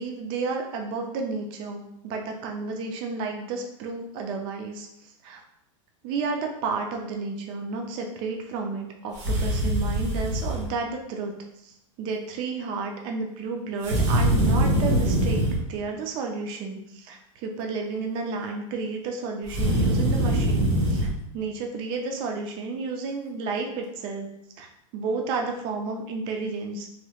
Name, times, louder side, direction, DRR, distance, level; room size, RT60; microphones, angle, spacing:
voice 1, 0.0-5.4 6.0-11.3 11.6-15.4 15.7-21.1 21.3-24.3 24.6-24.7 24.9-26.9, right 4 dB, 30° right, 2 dB, 0.4 m, -31 dB
sound 1, 9.1-10.7 13.8-15.6 19.4-21.1, right 1 dB, 60° right, 1.1 m, -23 dB
3.0 x 3.0 x 2.3 m, 0.80 s
supercardioid pair, 155°, 17 cm